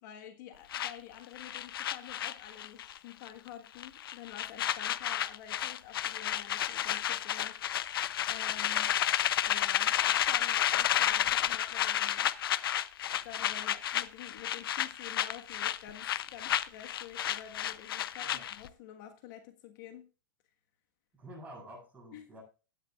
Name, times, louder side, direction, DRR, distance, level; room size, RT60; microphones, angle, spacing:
voice 1, 0.0-7.6 7.9-9.0 9.5-12.3 13.1-20.1 22.1-22.3, left 10 dB, 60° left, 5 dB, 1.5 m, -49 dB
sound 1, 0.7-3.0 3.2-3.5 3.8-18.7, left 11 dB, 90° left, 0.6 m, -31 dB
voice 2, 21.1-22.4, right 1 dB, 15° right, -3 dB, 7.8 m, -49 dB
16.0 x 10.5 x 2.4 m, 0.33 s
supercardioid pair, 135°, 12 cm